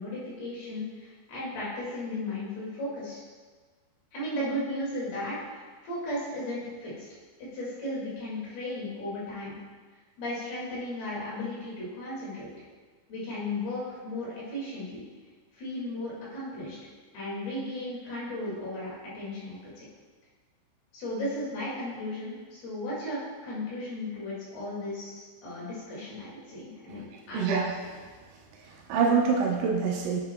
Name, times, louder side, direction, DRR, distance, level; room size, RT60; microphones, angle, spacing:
voice 1, 0.0-3.2 4.1-7.1 7.4-9.6 10.2-12.5 13.1-15.0 15.5-16.8 17.1-19.9 20.9-27.5, left 1 dB, 60° left, -7 dB, 3.9 m, -35 dB
voice 2, 27.3-27.8 28.7-30.2, right 5 dB, 80° right, -1 dB, 3.1 m, -25 dB
10.5 x 7.9 x 2.3 m, 1.4 s
omnidirectional pair, 5.3 m